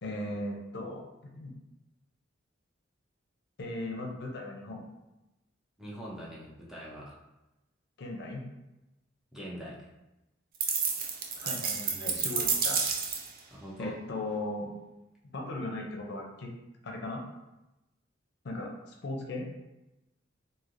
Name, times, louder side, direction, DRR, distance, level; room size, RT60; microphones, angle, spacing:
voice 1, 0.0-1.5 3.6-4.9 8.0-8.4 10.7-10.8 11.4-12.9 13.8-14.7 15.3-16.5 16.8-17.2 18.4-19.5, left 2 dB, 60° left, 1 dB, 0.5 m, -37 dB
voice 2, 5.8-7.2 9.3-9.8 13.5-13.9, right 1 dB, 5° right, -7 dB, 0.6 m, -42 dB
sound 1, 10.6-13.4, right 6 dB, 50° right, 0.4 m, -30 dB
3.2 x 2.6 x 2.5 m, 0.98 s
head